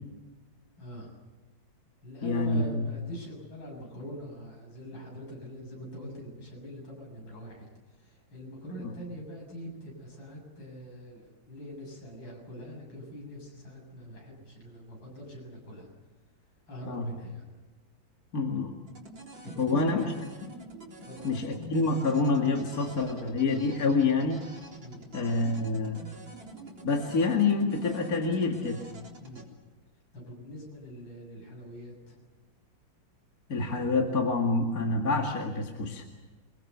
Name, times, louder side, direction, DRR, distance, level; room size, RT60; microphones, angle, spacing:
voice 1, 0.8-1.1 2.0-7.7 8.0-15.9 16.7-17.5 19.4-20.2 21.1-21.3 24.8-25.0 29.2-29.5 30.1-32.2, equal, 75° left, -1 dB, 8.1 m, -43 dB
voice 2, 2.2-2.9 8.8-8.9 16.9-17.1 18.3-18.8 19.6-20.1 21.2-24.5 25.1-26.0 26.8-28.8 33.5-36.0, left 3 dB, 45° left, 1 dB, 2.6 m, -27 dB
sound 1, 18.9-29.4, right 1 dB, 70° right, 4.7 m, -47 dB
29.0 x 22.0 x 6.8 m, 1.2 s
omnidirectional pair, 2.1 m